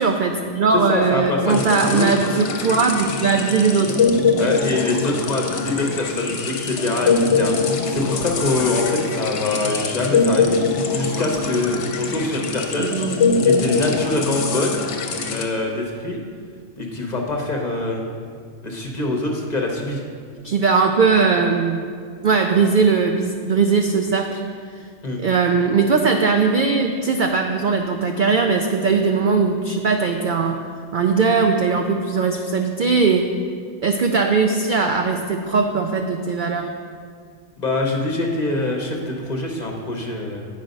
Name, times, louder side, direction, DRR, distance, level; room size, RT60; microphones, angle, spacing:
voice 1, 0.0-4.0 12.8-13.5 20.4-21.9 22.2-24.4 25.2-30.6 30.9-33.3 33.8-36.7, right 5 dB, 70° right, 4 dB, 0.4 m, -19 dB
voice 2, 0.7-2.1 4.4-10.6 10.9-12.9 13.4-14.8 15.3-16.2 16.8-18.0 18.6-20.0 25.0-25.2 37.6-40.5, left 2 dB, 35° left, 0 dB, 0.9 m, -24 dB
sound 1, 1.5-15.4, left 4 dB, 65° left, 1.0 m, -22 dB
9.0 x 5.1 x 5.2 m, 2.1 s
omnidirectional pair, 1.3 m